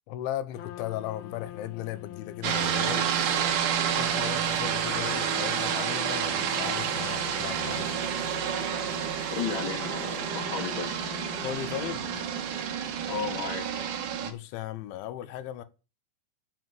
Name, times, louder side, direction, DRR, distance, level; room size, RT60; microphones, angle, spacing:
voice 1, 0.1-3.1 3.9-7.9 11.4-12.3 14.2-15.6, left 12 dB, 85° left, 3.3 m, -36 dB
Trumpet, 0.5-12.7, left 14 dB, 65° left, 2.7 m, -45 dB
sound 1, 2.4-14.3, right 8 dB, 60° right, 2.4 m, -29 dB
voice 2, 9.3-11.0 13.1-13.7, left 5 dB, 35° left, 2.5 m, -34 dB
10.0 x 7.4 x 7.7 m
omnidirectional pair, 5.3 m